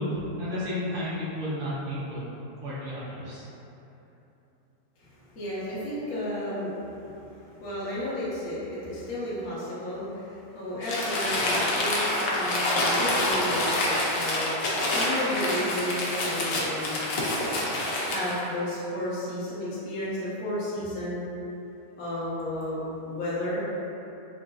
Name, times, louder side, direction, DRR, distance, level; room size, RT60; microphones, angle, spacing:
voice 1, 0.0-2.2 2.6-3.5, left 1 dB, 55° right, -11 dB, 0.6 m, -32 dB
voice 2, 5.0-14.5 14.9-17.3 18.1-21.3 22.0-23.6, left 1 dB, 60° left, -10 dB, 1.0 m, -33 dB
Crumpling crinkling, 10.8-18.4, left 1 dB, 80° left, 1.2 m, -27 dB
3.8 x 2.5 x 2.2 m, 3.0 s
omnidirectional pair, 1.9 m